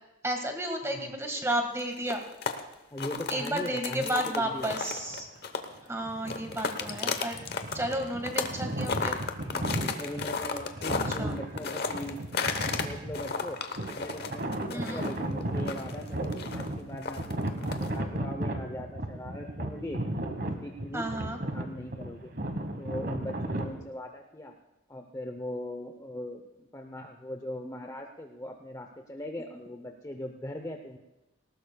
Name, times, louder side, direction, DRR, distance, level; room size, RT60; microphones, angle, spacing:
voice 1, 0.2-2.2 3.3-5.3 5.9-7.4 7.7-9.2 11.1-11.4 14.7-15.0 20.9-21.4, right 1 dB, 15° right, 3 dB, 1.7 m, -32 dB
voice 2, 0.8-1.1 2.9-4.9 6.8-7.1 9.4-12.2 12.8-13.6 13.8-21.1 21.4-22.3 22.8-24.5 24.9-31.0, left 1 dB, 15° left, 3 dB, 0.7 m, -40 dB
sound 1, 1.8-5.9 6.2-8.6 8.8-12.8 13.1-18.0, left 5 dB, 50° left, 1.0 m, -33 dB
sound 2, 4.5-5.3 5.9-23.8, right 1 dB, 50° right, 1.3 m, -35 dB
19.0 x 18.5 x 2.3 m, 0.96 s
head